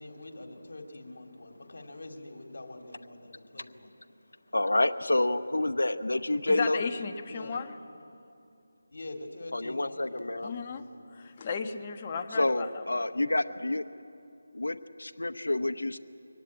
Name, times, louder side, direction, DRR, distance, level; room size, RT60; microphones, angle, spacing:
voice 1, 0.0-3.9 7.3-7.6 8.9-11.1 12.3-12.6, left 2 dB, 70° left, 4 dB, 2.5 m, -45 dB
voice 2, 4.5-6.8 9.5-10.5 12.4-13.8 14.5-16.0, left 2 dB, 90° left, 9 dB, 0.9 m, -28 dB
voice 3, 6.5-7.7 10.4-10.8 11.1-13.0, left 5 dB, 30° left, 5 dB, 1.1 m, -34 dB
23.0 x 18.5 x 8.7 m, 2.7 s
figure-of-eight pair, 170°, 0 cm